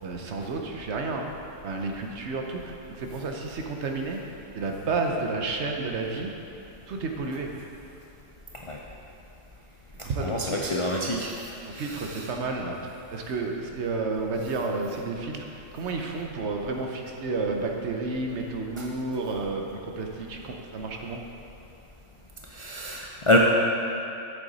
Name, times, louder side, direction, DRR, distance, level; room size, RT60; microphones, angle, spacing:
voice 1, 0.0-1.3 1.6-4.2 4.5-6.3 6.9-7.5 10.0-10.7 11.7-21.2, right 3 dB, 60° right, 2 dB, 1.0 m, -31 dB
voice 2, 10.2-11.3 11.7-12.2 18.8-18.9 22.5-23.4, left 1 dB, 55° left, -2 dB, 0.3 m, -26 dB
8.3 x 6.9 x 4.0 m, 2.9 s
omnidirectional pair, 1.4 m